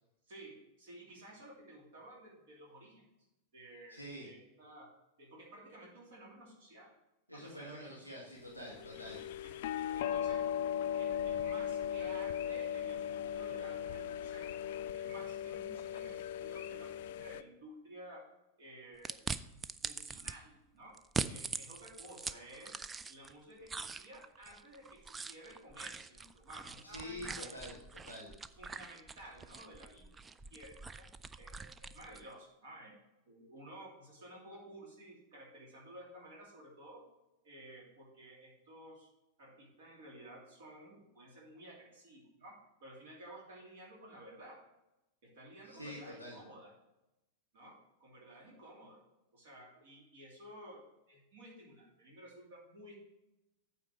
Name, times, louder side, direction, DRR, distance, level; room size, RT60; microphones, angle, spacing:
voice 1, 0.3-3.1 3.5-4.9 5.2-6.9 7.3-8.0 8.9-9.1 9.4-14.5 14.9-18.2 18.6-19.3 19.8-21.0 21.2-22.8 23.1-27.5 28.5-30.2 30.5-31.1 31.4-32.9 33.3-37.0 37.4-39.1 39.4-44.6 45.2-46.7 47.5-49.0 49.3-53.0, right 1 dB, 55° right, -2 dB, 2.6 m, -54 dB
voice 2, 3.9-4.3 7.3-9.2 26.8-28.3 45.6-46.4, left 1 dB, 90° right, -4 dB, 1.7 m, -47 dB
sound 1, 8.6-17.4, left 9 dB, 50° left, 0.4 m, -38 dB
sound 2, 19.0-20.3 21.0-23.3 23.7-32.3, right 4 dB, 15° right, 0.3 m, -43 dB
8.5 x 4.4 x 6.2 m, 0.92 s
figure-of-eight pair, 90°, 0 cm